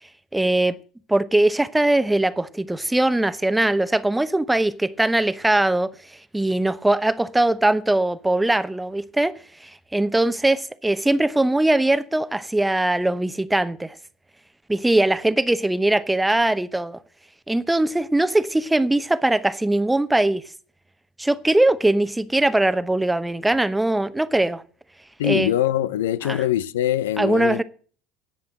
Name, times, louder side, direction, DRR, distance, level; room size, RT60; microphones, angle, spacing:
voice 1, 0.3-0.8 1.1-5.9 6.3-9.3 9.6-13.9 14.7-17.0 17.5-20.4 21.2-24.6 25.2-25.5 26.2-26.4 27.2-27.6, right 1 dB, 10° right, 0.9 m, -21 dB
voice 2, 25.2-27.6, left 12 dB, 80° left, 0.4 m, -23 dB
10.5 x 7.6 x 7.6 m
hypercardioid pair, 70°, 0 cm